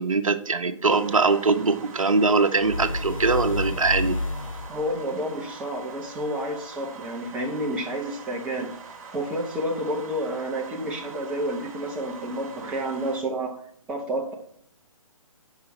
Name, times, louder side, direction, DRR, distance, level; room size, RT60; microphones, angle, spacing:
voice 1, 0.0-4.2, right 4 dB, 70° right, 8 dB, 0.7 m, -22 dB
sound 1, 0.9-13.2, right 5 dB, 25° right, 1.0 m, -43 dB
sound 2, 2.6-5.0, left 2 dB, 70° left, 0.7 m, -30 dB
voice 2, 4.7-8.7 9.1-13.6 13.9-14.3, right 1 dB, 5° right, -1 dB, 0.6 m, -30 dB
5.6 x 4.8 x 5.8 m, 0.65 s
figure-of-eight pair, 135°, 18 cm